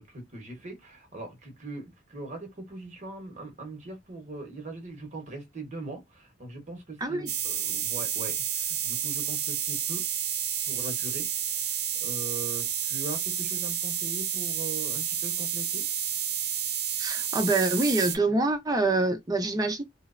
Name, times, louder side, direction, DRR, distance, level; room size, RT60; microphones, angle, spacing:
voice 1, 0.0-10.0 10.6-11.3 12.0-15.8, right 2 dB, 40° right, 0.9 m, -40 dB
voice 2, 7.0-7.3 17.0-19.8, right 2 dB, 20° right, 0.6 m, -26 dB
sound 1, 7.3-18.2, right 9 dB, 60° right, 0.5 m, -30 dB
3.0 x 2.0 x 2.4 m
head